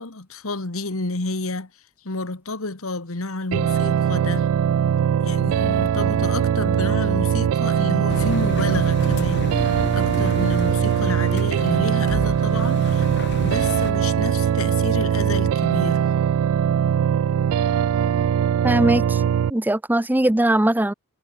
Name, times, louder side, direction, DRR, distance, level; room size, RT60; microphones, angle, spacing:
voice 1, 0.0-1.7 2.0-4.5 5.2-9.5 9.9-13.1 13.4-16.0, left 2 dB, 75° left, 1.8 m, -30 dB
sound 1, 3.5-19.5, right 8 dB, 80° right, 0.3 m, -21 dB
Engine, 8.1-13.9, left 1 dB, 50° left, 2.3 m, -31 dB
voice 2, 18.6-19.2 19.5-20.9, right 1 dB, 10° right, 0.5 m, -20 dB
head